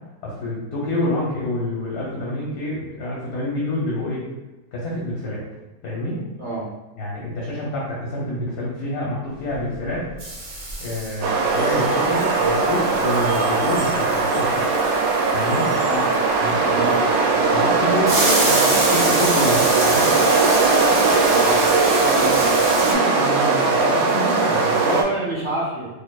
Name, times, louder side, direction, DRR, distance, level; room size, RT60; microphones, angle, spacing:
voice 1, 0.2-4.2 4.7-5.4 5.8-6.2 7.0-10.1 10.8-14.6 15.3-15.7 16.4-16.9 17.3-20.1 22.7-25.0, left 1 dB, 65° left, -5 dB, 1.2 m, -27 dB
sound 1, 9.5-9.9 10.2-16.5 18.1-22.9, right 2 dB, 50° right, 1.0 m, -28 dB
sound 2, 11.2-25.0, right 3 dB, 85° right, 1.3 m, -19 dB
voice 2, 21.3-21.6 22.0-22.5 24.8-25.9, right 1 dB, 25° right, -7 dB, 0.7 m, -27 dB
4.3 x 3.0 x 2.3 m, 1.1 s
omnidirectional pair, 1.9 m